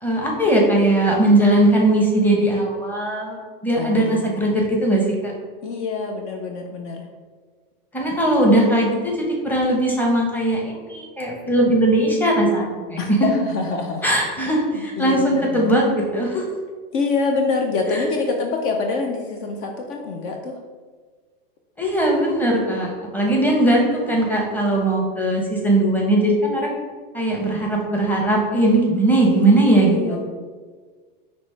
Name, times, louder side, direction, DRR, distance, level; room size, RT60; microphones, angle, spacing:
voice 1, 0.0-5.3 7.9-13.3 14.0-16.4 17.9-18.0 21.8-26.7 27.1-30.2, right 1 dB, 5° left, -1 dB, 1.0 m, -19 dB
voice 2, 3.8-4.6 5.6-7.1 13.0-14.0 14.5-15.7 16.9-20.6 29.7-30.2, left 4 dB, 50° left, 2 dB, 0.6 m, -25 dB
5.2 x 3.1 x 3.3 m, 1.5 s
supercardioid pair, 115°, 29 cm